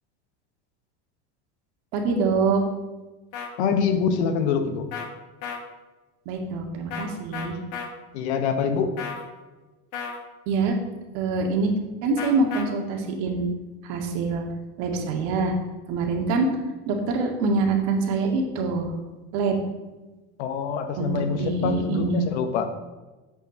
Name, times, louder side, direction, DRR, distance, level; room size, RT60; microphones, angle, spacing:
voice 1, 1.9-2.6 6.3-7.6 10.5-10.7 11.1-11.7 12.0-13.5 13.8-14.4 14.8-15.5 15.9-16.5 16.9-18.9 19.3-19.6 21.0-21.1 21.3-22.2, right 4 dB, 65° right, 2 dB, 2.2 m, -24 dB
sound 1, 3.3-3.5 4.9-5.1 5.4-5.6 6.9-7.1 7.3-7.9 9.0-9.3 9.9-10.2 12.2-12.6, left 7 dB, 60° left, 1.9 m, -33 dB
voice 2, 3.6-4.9 8.1-9.0 20.4-22.7, left 6 dB, 80° left, 7 dB, 1.4 m, -25 dB
8.1 x 7.0 x 6.4 m, 1.2 s
supercardioid pair, 105°, 33 cm